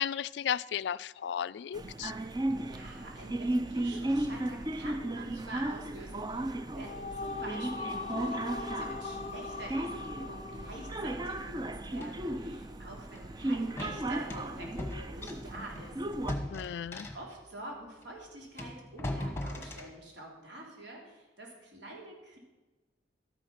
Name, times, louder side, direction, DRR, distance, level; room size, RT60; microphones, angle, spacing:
voice 1, 0.0-2.1 16.5-17.1, left 9 dB, 65° left, 18 dB, 0.3 m, -34 dB
sound 1, 1.7-16.3, right 1 dB, 20° right, 0.5 m, -35 dB
voice 2, 2.5-16.0 16.6-16.8 17.1-22.4, right 1 dB, 70° right, -1 dB, 3.3 m, -47 dB
sound 2, 6.5-12.0, left 3 dB, 35° left, 0.7 m, -41 dB
sound 3, 12.0-12.2 13.1-13.3 13.8-17.4 18.0-18.1 18.6-19.9, left 1 dB, 15° left, 1.2 m, -39 dB
12.5 x 9.3 x 5.8 m, 1.2 s
head